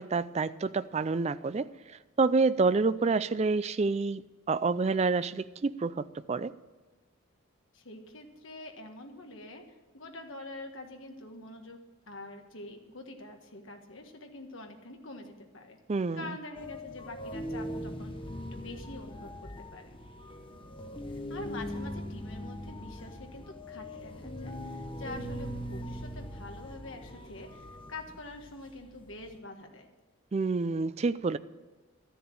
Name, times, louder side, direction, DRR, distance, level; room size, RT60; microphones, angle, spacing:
voice 1, 0.0-1.7 2.2-6.5 15.9-16.4 30.3-31.4, right 4 dB, 30° right, 15 dB, 0.4 m, -28 dB
voice 2, 7.7-9.6 9.9-11.8 12.1-15.8 16.1-18.2 18.5-20.0 21.1-29.9, left 2 dB, 65° left, 3 dB, 1.6 m, -45 dB
sound 1, 16.6-29.4, equal, 25° left, 0.9 m, -41 dB
13.0 x 7.0 x 8.8 m, 1.3 s
head